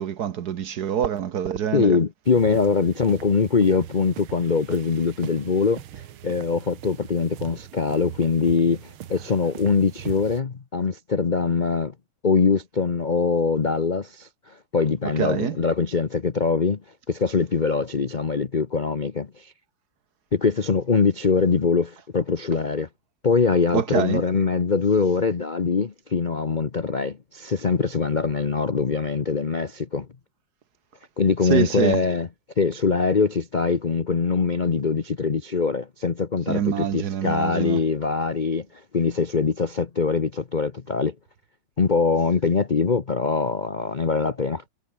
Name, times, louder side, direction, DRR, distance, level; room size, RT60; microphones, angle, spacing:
voice 1, 0.0-1.9 15.2-15.6 23.7-24.2 31.4-32.0 36.5-37.8, right 9 dB, 55° right, 1.2 m, -25 dB
voice 2, 1.7-11.9 12.2-16.8 17.1-19.5 20.3-22.9 23.2-30.1 31.2-32.3 32.6-41.1 41.8-44.6, left 5 dB, 70° left, 0.4 m, -23 dB
sound 1, 2.3-10.4, right 11 dB, 75° right, 1.9 m, -41 dB
omnidirectional pair, 2.4 m